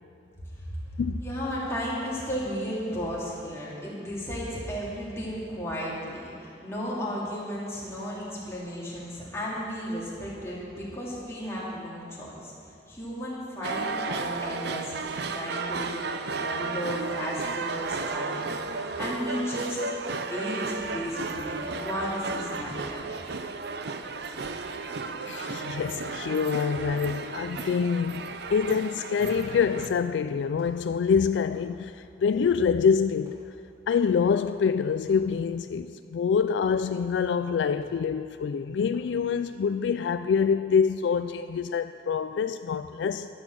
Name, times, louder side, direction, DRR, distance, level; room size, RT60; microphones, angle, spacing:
voice 1, 0.9-12.5 12.9-16.0 16.3-19.8 20.3-23.0, equal, 15° left, 3.0 m, -34 dB
sound 1, 13.6-29.9, right 4 dB, 65° right, 0.6 m, -34 dB
sound 2, 21.4-21.6 22.6-22.8 24.3-24.5 25.9-26.1 27.2-27.7 28.2-28.4 29.4-29.7 30.5-31.0 31.4-31.8 32.3-32.8 33.2-33.5 34.1-34.3 35.0-35.3 36.7-36.9 37.8-38.0 38.9-39.2, equal, 20° right, 3.7 m, -51 dB
voice 2, 25.3-33.4 33.9-43.3, left 6 dB, 75° left, 0.3 m, -26 dB
11.0 x 10.5 x 6.3 m
head